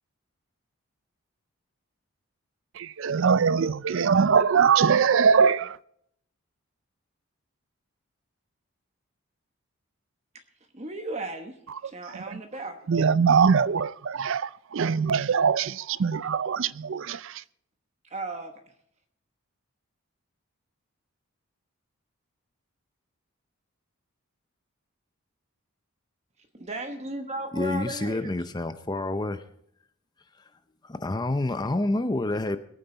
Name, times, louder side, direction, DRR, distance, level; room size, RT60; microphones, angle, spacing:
voice 1, 2.7-5.8 12.1-12.4 12.9-17.4, right 6 dB, 60° right, 0.4 m, -22 dB
voice 2, 10.7-11.5 11.8-12.8 18.0-18.5 26.5-28.3, right 2 dB, 30° right, 1.1 m, -35 dB
voice 3, 27.5-29.4 30.8-32.6, left 2 dB, 20° left, 0.5 m, -28 dB
21.5 x 9.2 x 3.9 m
head